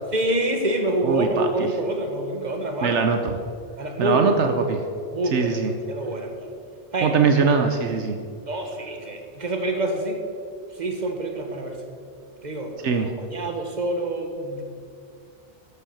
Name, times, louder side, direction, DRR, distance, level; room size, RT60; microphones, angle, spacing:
voice 1, 0.1-3.0 3.8-4.4 5.1-5.6 5.9-6.5 6.9-7.1 8.5-10.2 10.7-11.8 12.4-14.6, right 1 dB, 40° right, 4 dB, 1.6 m, -26 dB
voice 2, 1.0-1.7 2.8-3.4 4.0-4.8 5.3-5.7 7.0-8.2 12.8-13.1, right 5 dB, 75° right, 5 dB, 1.2 m, -21 dB
13.0 x 8.2 x 7.1 m, 2.3 s
omnidirectional pair, 1.2 m